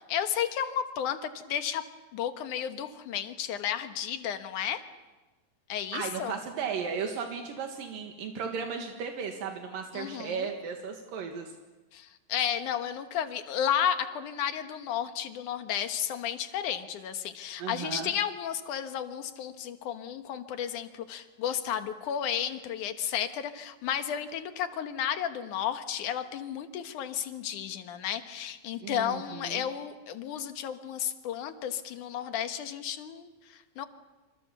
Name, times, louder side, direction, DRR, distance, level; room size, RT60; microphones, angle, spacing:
voice 1, 0.1-1.8 2.1-4.8 5.7-6.3 9.9-10.5 11.9-33.9, left 9 dB, 70° left, 8 dB, 2.7 m, -33 dB
voice 2, 5.9-11.5 17.6-18.1 28.8-29.6, right 6 dB, 80° right, 3 dB, 3.4 m, -35 dB
27.5 x 27.5 x 7.0 m, 1.2 s
omnidirectional pair, 3.9 m